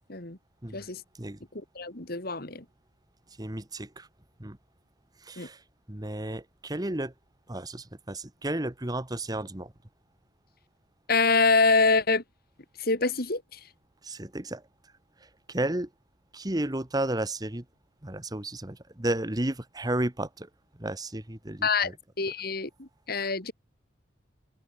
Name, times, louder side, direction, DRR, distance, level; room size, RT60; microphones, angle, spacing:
voice 1, 1.7-2.6 5.4-5.5 11.1-12.2 12.8-13.6 21.6-23.5, left 4 dB, 50° left, 2.6 m, -25 dB
voice 2, 3.4-4.1 4.4-4.6 5.2-5.6 5.9-7.1 7.5-9.7 14.0-14.6 15.5-15.9 16.3-17.6 18.0-20.5 20.8-21.7, right 1 dB, 20° right, 1.3 m, -32 dB
open air
head